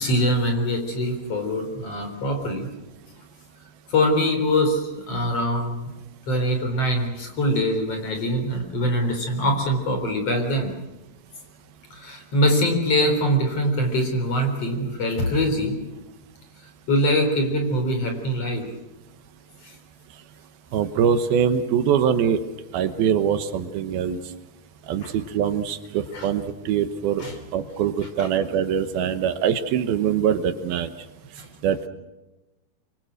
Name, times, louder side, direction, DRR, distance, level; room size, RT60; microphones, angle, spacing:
voice 1, 0.0-2.7 3.9-5.9 6.3-10.7 11.9-15.8 16.9-18.7 19.6-19.7 25.0-25.1 26.1-26.3 27.2-27.4 28.2-28.3 31.4-31.5, equal, 40° left, 4 dB, 4.7 m, -23 dB
voice 2, 20.7-22.4 22.7-24.2 24.9-27.2 27.5-30.9 31.6-31.9, right 8 dB, 75° right, 10 dB, 2.9 m, -23 dB
26.0 x 24.0 x 6.4 m, 1.1 s
omnidirectional pair, 4.4 m